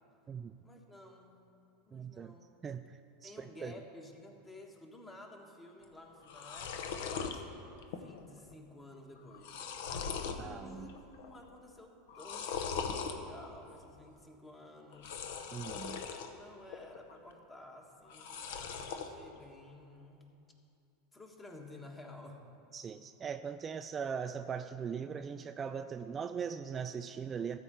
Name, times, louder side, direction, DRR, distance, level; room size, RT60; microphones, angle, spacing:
voice 1, 0.6-1.5 1.9-2.4 3.2-7.5 7.9-9.7 10.2-15.2 16.1-20.3 21.1-22.5, left 1 dB, 20° left, 2 dB, 1.5 m, -53 dB
voice 2, 1.9-2.3 2.6-3.3 3.6-3.7 10.4-10.9 15.5-16.0 22.7-27.6, right 6 dB, 30° right, 9 dB, 0.3 m, -40 dB
sound 1, 5.8-5.9 6.2-7.4 7.8-8.2 8.5-8.6 9.2-10.4 10.9-11.4 12.1-13.2 14.9-16.3 16.7-17.3 18.0-19.1, left 6 dB, 70° left, 0.8 m, -40 dB
13.5 x 4.5 x 8.0 m, 2.6 s
hypercardioid pair, 100°, 0 cm